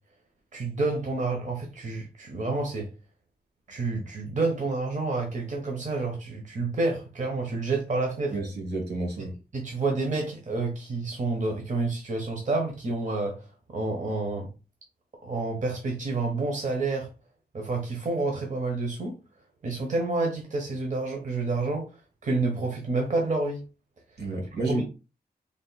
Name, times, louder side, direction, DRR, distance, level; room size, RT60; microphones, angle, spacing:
voice 1, 0.5-2.9 3.7-8.3 9.5-14.5 15.2-17.1 17.5-19.2 19.6-21.9 22.2-23.6 24.7-24.8, right 3 dB, 45° right, 0.9 m, -29 dB
voice 2, 8.3-9.3 24.2-24.8, right 2 dB, 80° right, 1.7 m, -30 dB
3.4 x 2.4 x 4.0 m
wide cardioid pair, 145°, 17 cm